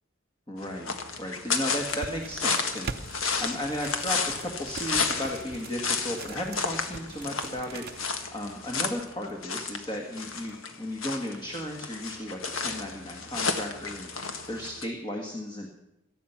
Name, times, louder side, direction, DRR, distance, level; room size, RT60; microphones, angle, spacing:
voice 1, 0.5-15.7, left 1 dB, 20° left, 2 dB, 1.8 m, -35 dB
sound 1, 0.6-14.8, left 5 dB, 80° left, 1.6 m, -32 dB
sound 2, 1.7-8.1 9.0-9.6 10.0-10.6, right 4 dB, 50° right, 0.6 m, -43 dB
18.0 x 13.0 x 5.8 m, 0.88 s
head